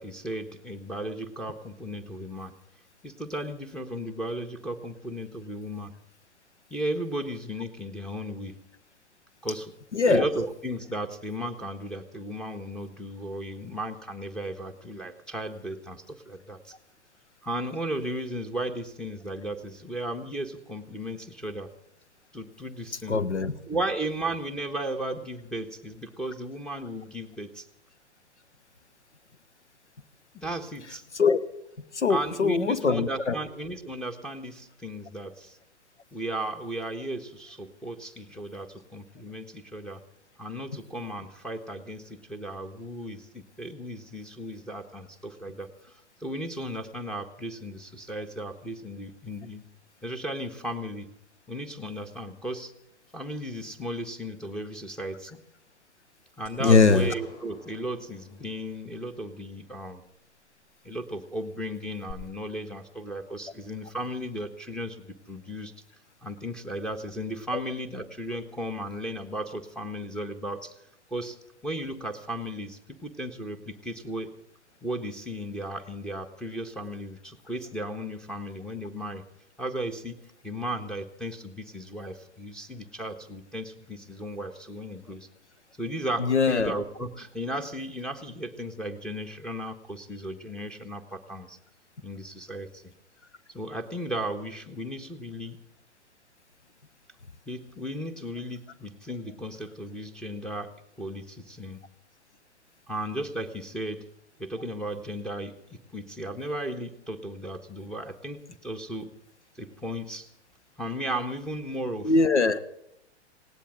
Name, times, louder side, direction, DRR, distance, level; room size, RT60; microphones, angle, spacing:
voice 1, 0.0-2.5 3.0-5.9 6.7-8.6 9.4-9.7 10.0-16.7 17.4-21.7 22.3-23.2 23.7-27.7 30.3-31.0 32.1-35.6 36.1-40.0 40.4-45.9 46.2-49.6 50.0-51.1 51.5-52.7 53.1-55.4 56.4-60.0 60.8-65.7 66.2-70.7 71.1-71.4 71.6-74.3 74.8-79.2 79.6-85.3 85.8-91.6 92.0-92.9 93.5-95.6 97.5-101.8 102.9-104.1 104.4-109.2 109.6-110.3 110.8-112.1, right 1 dB, ahead, 1 dB, 1.4 m, -35 dB
voice 2, 9.9-10.3 23.1-23.5 31.1-31.4 31.9-33.4 56.6-57.1 67.5-67.6 86.2-86.7 112.0-112.6, left 4 dB, 85° left, 13 dB, 1.1 m, -22 dB
sound 1, 56.5-59.0 62.1-62.2, left 3 dB, 55° left, 6.2 m, -47 dB
19.5 x 18.0 x 3.9 m, 0.81 s
figure-of-eight pair, 110°, 34 cm